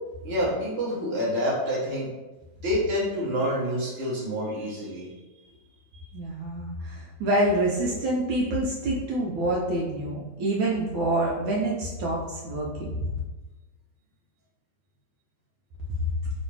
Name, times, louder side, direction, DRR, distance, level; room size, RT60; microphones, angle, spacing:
voice 1, 0.2-2.1 2.6-5.1 5.9-6.0, equal, 45° right, -7 dB, 0.9 m, -27 dB
voice 2, 6.1-13.1, right 1 dB, 75° right, -3 dB, 1.4 m, -27 dB
3.2 x 3.1 x 4.4 m, 1.1 s
omnidirectional pair, 2.2 m